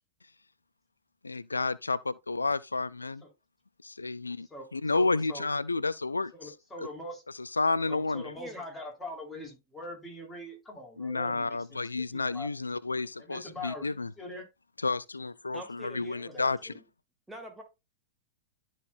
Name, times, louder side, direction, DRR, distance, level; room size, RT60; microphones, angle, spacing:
voice 1, 1.2-3.2 3.8-4.5 4.7-6.3 7.4-8.2 11.0-14.1 14.8-16.6, left 3 dB, 90° left, 0.3 m, -30 dB
voice 2, 4.4-5.5 6.3-7.2 7.9-12.7 13.2-13.9 14.2-14.5 16.2-16.8, left 1 dB, 10° left, 3.8 m, -43 dB
voice 3, 15.5-16.3 16.7-16.8 17.3-17.6, right 1 dB, 5° right, 2.1 m, -44 dB
12.5 x 4.4 x 2.6 m
figure-of-eight pair, 100°, 0 cm